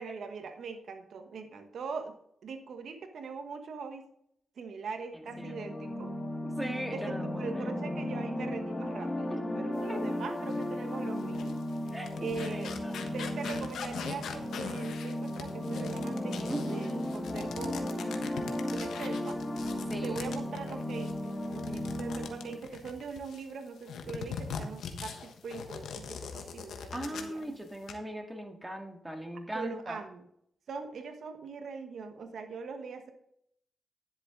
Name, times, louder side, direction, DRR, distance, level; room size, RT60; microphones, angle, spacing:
voice 1, 0.0-2.1 2.4-4.1 4.6-6.1 6.5-6.6 6.9-11.5 12.2-12.7 13.1-19.4 20.0-27.5 29.5-30.2 30.7-33.1, right 5 dB, 75° right, 6 dB, 1.2 m, -41 dB
sound 1, 5.2-22.6, left 1 dB, 30° left, 1.6 m, -35 dB
voice 2, 6.4-7.6 9.3-9.4 9.9-10.0 11.9-12.1 12.5-13.0 16.5-16.8 19.9-20.4 26.9-30.0, right 1 dB, 10° right, 4 dB, 1.9 m, -39 dB
sound 2, 10.5-10.6 11.2-23.4 23.9-27.4 27.7-27.9, left 6 dB, 85° left, 1.2 m, -42 dB
10.5 x 7.5 x 3.8 m, 0.70 s
cardioid pair, 65°, 0 cm